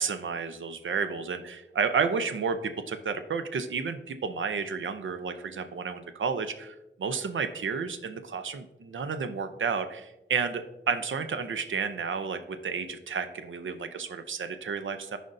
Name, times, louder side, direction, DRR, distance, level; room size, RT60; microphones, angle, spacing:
voice 1, 0.0-15.2, right 5 dB, 90° right, 9 dB, 0.6 m, -31 dB
13.5 x 5.0 x 2.6 m, 0.94 s
wide cardioid pair, 75°, 19 cm